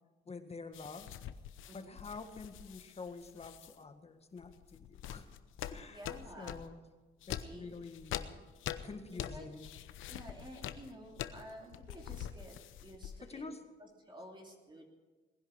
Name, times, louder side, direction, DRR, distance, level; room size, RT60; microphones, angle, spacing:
voice 1, 0.2-1.1 1.7-5.2 5.7-6.0 6.4-6.8 7.3-8.4 8.8-9.7 13.2-13.6, left 4 dB, 30° left, 7 dB, 1.7 m, -47 dB
sound 1, 0.7-3.7 4.4-6.7 7.2-13.4, left 11 dB, 80° left, 0.8 m, -45 dB
voice 2, 1.7-2.0 5.9-6.6 7.4-7.7 9.3-9.5 10.1-13.4 13.8-14.9, right 1 dB, 25° right, 0 dB, 3.0 m, -51 dB
19.5 x 10.5 x 6.4 m, 1.2 s
cardioid pair, 90°, 20 cm